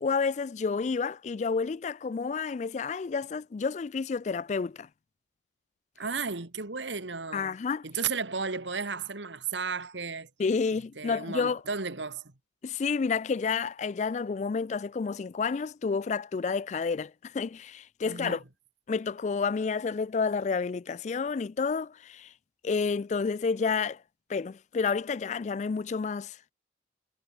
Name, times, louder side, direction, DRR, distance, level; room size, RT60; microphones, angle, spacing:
voice 1, 0.0-4.9 7.3-7.8 10.4-11.6 12.6-18.4 18.9-22.3 22.6-24.0 24.3-26.5, left 5 dB, 40° left, 0.3 m, -30 dB
voice 2, 6.0-7.6 7.8-10.3 11.0-12.3 18.1-18.4, right 5 dB, 85° right, 2.1 m, -34 dB
head